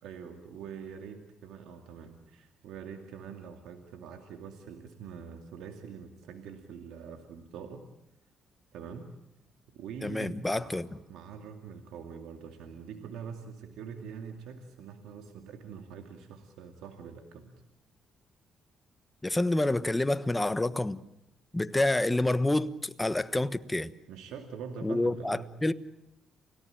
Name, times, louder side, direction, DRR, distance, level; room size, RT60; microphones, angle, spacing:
voice 1, 0.0-7.8 8.7-9.1 9.7-17.5 24.1-25.5, right 6 dB, 90° right, 2.4 m, -44 dB
voice 2, 10.0-10.9 19.2-21.0 21.5-23.9 24.8-25.7, left 2 dB, 10° left, 1.2 m, -28 dB
29.0 x 17.5 x 8.8 m
cardioid pair, 90°, 0 cm